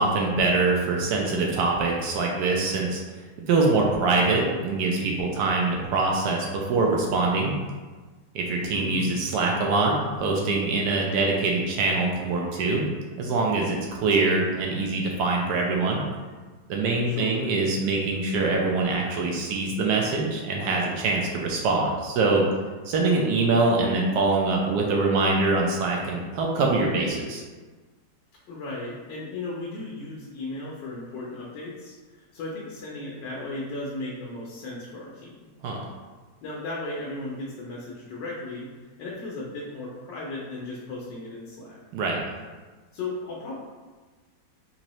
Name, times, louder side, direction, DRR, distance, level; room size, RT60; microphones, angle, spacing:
voice 1, 0.0-3.0 3.5-7.5 8.3-12.9 13.2-16.0 16.7-22.5 22.9-27.4 35.6-35.9 41.9-42.2, right 3 dB, 75° right, -1 dB, 1.1 m, -24 dB
voice 2, 8.7-9.2 17.0-17.5 28.5-35.4 36.4-38.7 39.0-41.8 42.9-43.6, left 2 dB, 85° left, -4 dB, 1.4 m, -36 dB
4.1 x 2.7 x 3.0 m, 1.3 s
omnidirectional pair, 1.9 m